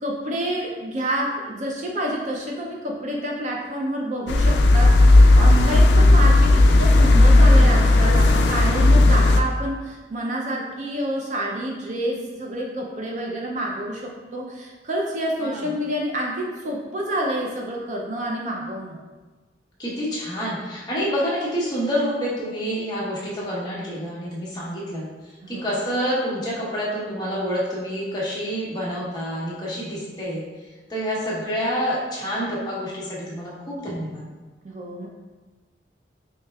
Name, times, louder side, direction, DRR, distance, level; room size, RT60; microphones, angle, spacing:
voice 1, 0.0-19.0 25.4-25.7 34.6-35.1, right 1 dB, 40° right, -1 dB, 0.4 m, -28 dB
sound 1, 4.3-9.4, left 2 dB, 70° left, 0.3 m, -14 dB
voice 2, 19.8-25.1 25.5-30.4 30.9-34.3, equal, 20° left, -7 dB, 0.9 m, -27 dB
4.8 x 3.1 x 2.3 m, 1.3 s
head